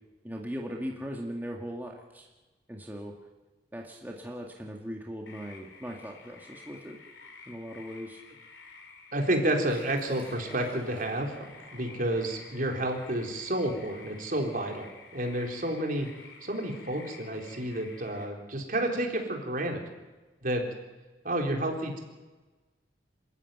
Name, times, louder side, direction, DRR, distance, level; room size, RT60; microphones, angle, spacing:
voice 1, 0.2-2.3 2.7-3.1 3.7-7.0 7.5-8.2, equal, 10° right, 0 dB, 1.8 m, -39 dB
sound 1, 5.3-18.3, left 4 dB, 80° left, 4.1 m, -51 dB
voice 2, 9.1-11.4 11.7-16.1 16.4-19.8 20.4-20.6 21.2-22.0, right 1 dB, 50° right, 1 dB, 3.9 m, -30 dB
Liquid, 9.6-15.3, equal, 10° left, 7.7 m, -54 dB
27.5 x 14.0 x 9.2 m, 1.2 s
head